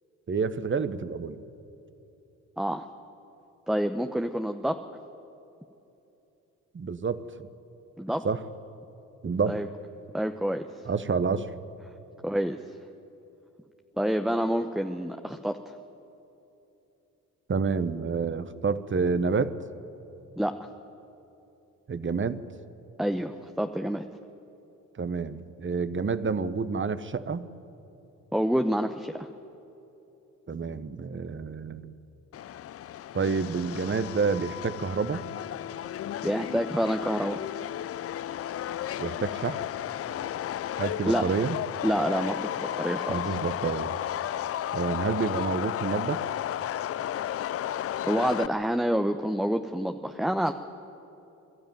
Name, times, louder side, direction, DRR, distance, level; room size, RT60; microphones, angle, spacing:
voice 1, 0.3-1.4 6.7-7.2 8.2-8.4 9.2-9.6 10.9-11.5 17.5-19.5 21.9-22.4 25.0-27.4 30.5-31.9 33.1-35.2 39.0-39.6 40.8-41.6 43.1-44.0 44.7-46.2, right 5 dB, 30° right, 13 dB, 1.1 m, -28 dB
voice 2, 3.7-4.8 8.0-8.3 9.5-9.7 10.1-10.7 12.2-12.6 14.0-15.7 20.4-20.7 23.0-24.0 28.3-29.3 36.2-37.4 41.0-41.2 41.8-43.4 48.0-50.5, equal, ahead, 6 dB, 0.9 m, -28 dB
Subway metro underground, 32.3-48.5, left 11 dB, 40° left, 0.4 m, -33 dB
22.0 x 13.0 x 9.2 m, 3.0 s
hypercardioid pair, 55°, 38 cm